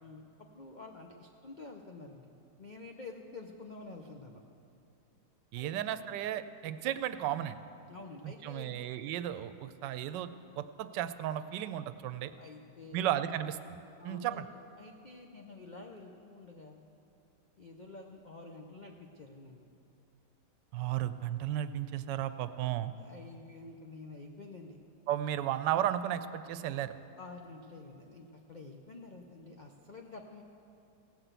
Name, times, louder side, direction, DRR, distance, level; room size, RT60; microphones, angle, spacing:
voice 1, 0.0-2.3 2.6-4.4 5.6-5.8 7.9-8.7 12.4-13.0 14.0-14.4 14.8-16.8 17.6-19.7 23.0-24.8 27.2-30.4, left 3 dB, 70° left, 2 dB, 0.4 m, -49 dB
voice 2, 5.5-7.6 8.2-10.3 10.6-12.3 12.9-13.8 14.0-14.4 20.7-22.9 25.1-26.9, right 11 dB, 90° right, 12 dB, 1.2 m, -34 dB
17.0 x 5.9 x 8.0 m, 2.7 s
omnidirectional pair, 1.8 m